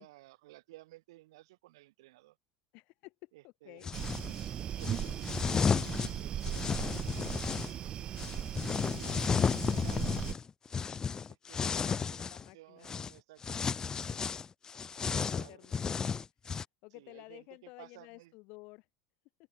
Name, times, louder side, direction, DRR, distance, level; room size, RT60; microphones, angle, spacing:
voice 1, 0.0-2.4 3.3-4.0 4.7-8.7 9.5-10.2 11.3-14.3 15.0-15.7 16.9-18.3, right 18 dB, 60° right, 2.8 m, -57 dB
voice 2, 2.7-3.9 8.9-9.2 11.6-12.9 15.0-16.0 16.4-16.5 16.8-18.9, left 26 dB, 50° left, 4.0 m, -53 dB
sound 1, 3.8-4.3 4.8-7.7 8.2-12.5 12.8-13.1 13.4-16.6, left 6 dB, 25° left, 0.5 m, -33 dB
sound 2, 3.9-10.3, right 10 dB, 35° right, 0.4 m, -38 dB
figure-of-eight pair, 70°, 3 cm